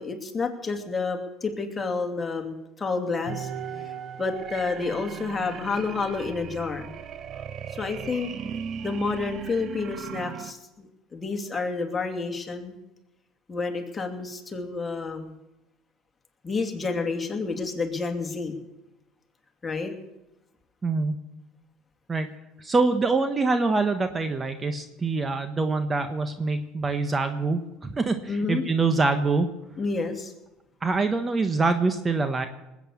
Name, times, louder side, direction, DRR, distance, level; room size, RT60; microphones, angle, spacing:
voice 1, 0.0-3.5 3.8-3.9 4.2-6.9 7.7-8.5 8.8-10.9 11.1-12.7 13.5-15.4 16.4-18.6 19.6-19.9 28.3-28.6 29.8-30.3, left 4 dB, 20° left, 3 dB, 2.6 m, -29 dB
sound 1, 3.3-10.5, right 8 dB, 45° right, 1.0 m, -37 dB
voice 2, 20.8-21.2 22.1-22.3 22.6-29.5 30.8-32.5, right 3 dB, 25° right, 8 dB, 1.2 m, -25 dB
20.0 x 8.6 x 7.1 m, 0.94 s
supercardioid pair, 85°, 0 cm